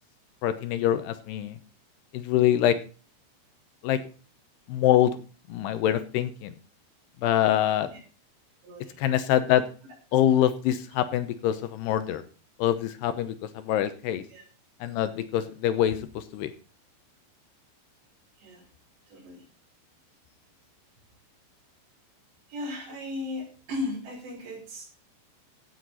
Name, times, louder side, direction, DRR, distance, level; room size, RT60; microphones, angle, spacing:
voice 1, 0.4-1.6 2.1-2.8 3.8-4.0 4.7-5.2 5.5-6.5 7.2-7.9 9.0-9.7 10.1-12.2 12.6-14.2 14.8-16.5, left 11 dB, 75° left, 12 dB, 2.7 m, -24 dB
voice 2, 8.6-9.0 14.3-14.4 18.4-18.7 19.1-19.5 22.5-24.9, left 2 dB, 70° right, 0 dB, 7.2 m, -36 dB
15.5 x 8.1 x 4.0 m, 0.37 s
omnidirectional pair, 5.3 m